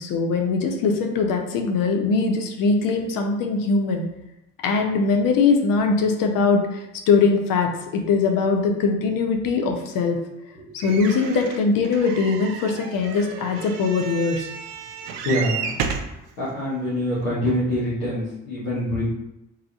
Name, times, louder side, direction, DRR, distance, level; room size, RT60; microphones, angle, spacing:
voice 1, 0.0-4.1 4.6-10.2 10.7-14.5, left 4 dB, 55° left, 3 dB, 0.8 m, -21 dB
sound 1, 10.8-16.2 16.9-17.0 17.2-17.3, right 6 dB, 65° right, 0.5 m, -32 dB
voice 2, 15.2-15.7 16.4-19.0, left 1 dB, 80° left, -11 dB, 1.3 m, -25 dB
3.7 x 3.2 x 2.9 m, 0.86 s
figure-of-eight pair, 45°, 40 cm